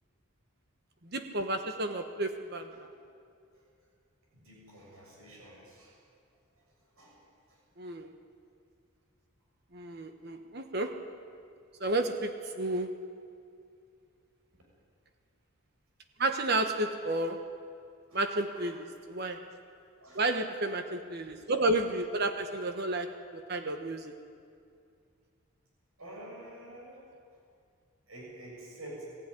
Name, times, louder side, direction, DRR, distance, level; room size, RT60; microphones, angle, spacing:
voice 1, 1.1-2.7 7.8-8.1 9.7-11.1 11.8-12.9 16.2-17.4 18.1-19.5 20.1-24.1, right 2 dB, 50° right, 6 dB, 1.1 m, -31 dB
voice 2, 4.3-6.0 6.6-7.2 7.5-7.6 18.1-18.7 20.0-20.3 20.9-21.0 26.0-27.0 28.1-29.1, right 1 dB, 80° right, -2 dB, 7.1 m, -49 dB
22.0 x 15.5 x 9.9 m, 2.4 s
head